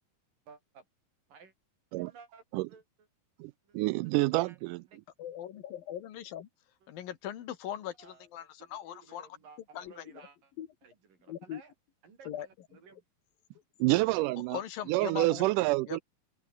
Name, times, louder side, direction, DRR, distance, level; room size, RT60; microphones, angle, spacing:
voice 1, 0.5-0.9 1.3-1.5 1.9-3.1 3.6-3.8 4.0-5.0 8.0-10.5 10.8-11.7 12.0-13.0, right 5 dB, 65° right, 6.2 m, -56 dB
voice 2, 3.4-4.8 13.8-14.6 14.9-16.0, right 21 dB, 90° right, 1.8 m, -28 dB
voice 3, 5.2-6.5 6.9-9.3 9.7-10.2 10.6-10.7 11.3-11.6 12.3-12.5 14.5-15.5 15.9-16.0, left 11 dB, 75° left, 3.4 m, -40 dB
omnidirectional pair, 4.2 m